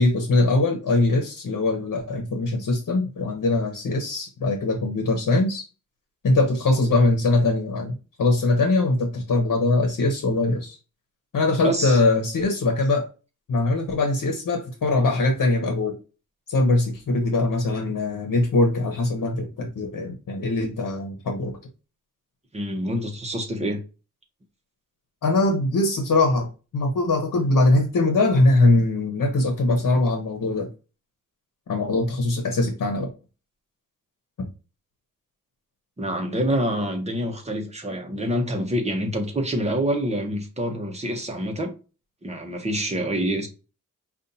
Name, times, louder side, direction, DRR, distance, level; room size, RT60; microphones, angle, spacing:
voice 1, 0.0-5.6 6.2-7.9 8.2-10.8 11.3-13.1 13.5-16.0 16.5-21.5 25.2-30.7 31.7-33.1 34.4-34.5, left 2 dB, 75° left, 1.0 m, -22 dB
voice 2, 11.6-12.0 22.5-23.8 36.0-41.7 42.2-43.5, equal, 20° right, 1.0 m, -26 dB
5.2 x 2.5 x 2.7 m
wide cardioid pair, 115°, 32 cm